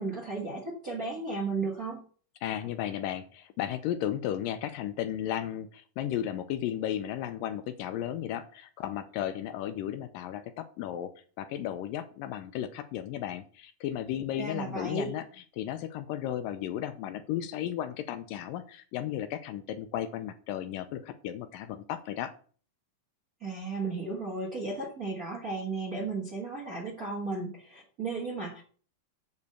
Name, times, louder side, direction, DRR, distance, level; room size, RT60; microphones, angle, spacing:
voice 1, 0.0-2.0 14.4-15.1 23.4-28.6, right 3 dB, 45° right, -1 dB, 1.1 m, -34 dB
voice 2, 2.4-11.1 11.4-15.3 15.6-22.3, left 11 dB, 80° left, 10 dB, 2.2 m, -34 dB
8.1 x 5.4 x 6.6 m, 0.42 s
omnidirectional pair, 4.2 m